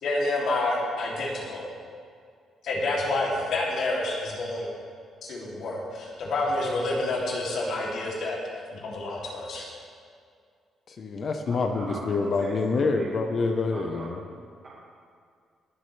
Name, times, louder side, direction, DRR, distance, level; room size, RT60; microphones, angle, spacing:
voice 1, 0.0-1.7 2.6-4.7 5.2-8.4 8.7-9.7, left 2 dB, 70° left, -4 dB, 3.0 m, -28 dB
voice 2, 10.9-14.2, left 3 dB, 50° left, 5 dB, 1.0 m, -26 dB
voice 3, 11.4-13.1 13.7-14.1, right 2 dB, 40° right, -9 dB, 2.7 m, -41 dB
21.0 x 7.5 x 3.4 m, 2.2 s
cardioid pair, 90°, 0 cm